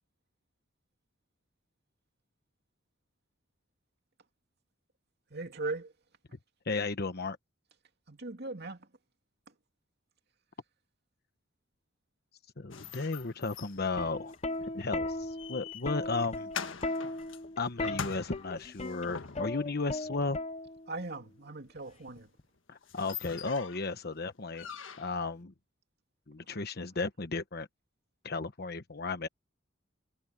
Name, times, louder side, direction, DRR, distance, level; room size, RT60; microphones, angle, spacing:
voice 1, 5.3-5.9 8.1-8.9 20.9-22.3, right 3 dB, 55° right, 2.6 m, -39 dB
voice 2, 6.6-7.4 12.6-14.3 14.7-16.5 17.6-20.4 22.7-24.7 25.0-25.5 26.3-27.7 28.2-29.3, left 3 dB, 55° left, 1.1 m, -34 dB
sound 1, 12.7-19.7 22.1-22.2 22.6-22.7 22.8-23.9 24.5-25.3, left 6 dB, 85° left, 1.5 m, -44 dB
Plucked string instrument, 13.8-21.0 22.1-22.4, left 2 dB, 35° left, 0.8 m, -37 dB
head